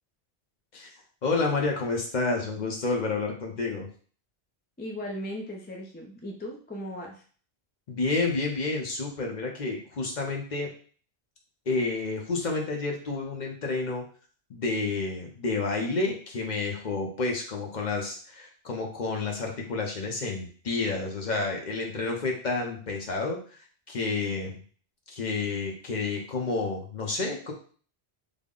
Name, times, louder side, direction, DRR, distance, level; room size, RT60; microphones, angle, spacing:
voice 1, 1.2-3.9 7.9-10.7 11.7-14.0 14.5-24.6 25.1-27.5, left 3 dB, 50° left, 0 dB, 0.8 m, -30 dB
voice 2, 4.8-7.2, equal, 15° left, 0 dB, 0.3 m, -37 dB
3.5 x 2.1 x 3.7 m, 0.43 s
omnidirectional pair, 1.1 m